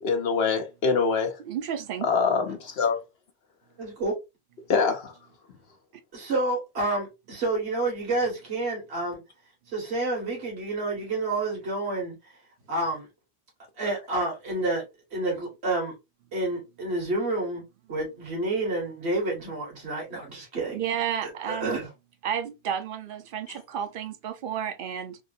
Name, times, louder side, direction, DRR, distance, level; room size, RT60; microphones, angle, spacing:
voice 1, 0.0-1.3 2.0-3.0 4.7-5.1, left 5 dB, 70° left, 0.9 m, -24 dB
voice 2, 1.5-2.1 20.7-21.8 22.2-25.2, right 9 dB, 60° right, 0.7 m, -31 dB
voice 3, 3.8-4.1 6.1-9.2 9.7-12.1 12.7-13.1 13.8-14.8 15.1-15.9 16.3-17.6 17.9-20.8 21.2-21.9, right 2 dB, 80° right, 1.7 m, -29 dB
3.5 x 2.5 x 2.6 m
omnidirectional pair, 1.1 m